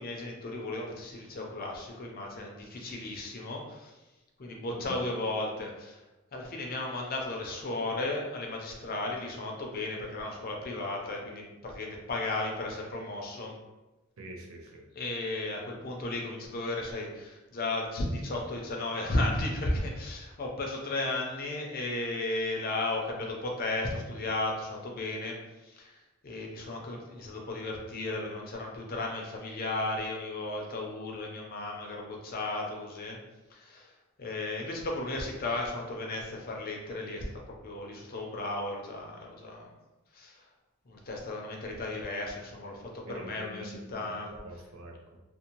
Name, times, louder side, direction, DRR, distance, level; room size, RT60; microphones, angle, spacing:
voice 1, 0.0-3.9 4.4-6.0 6.3-13.5 14.9-25.4 25.6-26.0 26.2-33.2 33.5-33.9 34.2-39.7 40.1-40.4 40.9-44.3, left 2 dB, 45° left, 0 dB, 0.5 m, -34 dB
voice 2, 14.2-14.8 43.1-45.2, right 1 dB, 80° right, 2 dB, 0.5 m, -45 dB
2.6 x 2.1 x 2.8 m, 1.1 s
head